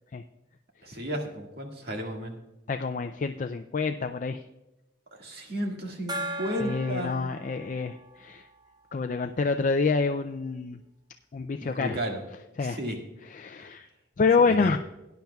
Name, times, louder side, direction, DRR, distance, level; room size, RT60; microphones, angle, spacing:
voice 1, 0.8-2.3 5.1-7.3 11.6-12.2 12.6-13.0 14.4-14.8, equal, 55° right, 1 dB, 1.9 m, -33 dB
voice 2, 2.7-4.4 6.6-8.4 8.9-10.8 11.3-12.0 12.6-12.8 13.3-13.9 14.2-14.8, left 4 dB, 40° left, 7 dB, 0.3 m, -27 dB
Gong, 6.1-9.3, right 1 dB, 20° right, 0.8 m, -39 dB
17.0 x 10.5 x 2.3 m, 0.98 s
head